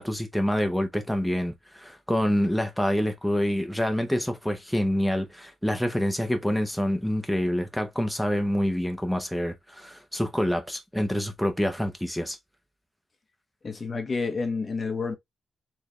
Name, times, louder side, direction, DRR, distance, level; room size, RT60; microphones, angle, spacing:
voice 1, 0.0-12.4, equal, ahead, 0.8 m, -27 dB
voice 2, 13.6-15.2, left 4 dB, 30° left, 1.1 m, -29 dB
4.5 x 3.4 x 3.0 m
wide cardioid pair, 150°, 0 cm